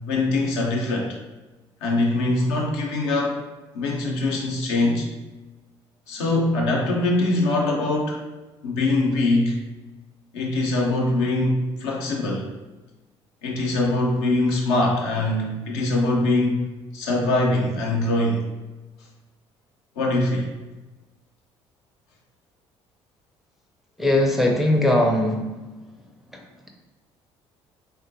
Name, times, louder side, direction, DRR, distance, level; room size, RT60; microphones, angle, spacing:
voice 1, 0.1-1.2 1.8-3.4 3.7-5.1 6.1-8.2 8.6-9.6 10.3-12.5 13.4-16.6 16.9-18.5 20.0-20.5, left 2 dB, 65° left, -1 dB, 0.6 m, -22 dB
voice 2, 24.0-25.8 26.3-26.7, left 1 dB, ahead, 0 dB, 0.5 m, -21 dB
3.7 x 2.1 x 2.6 m, 1.1 s
figure-of-eight pair, 50°, 15 cm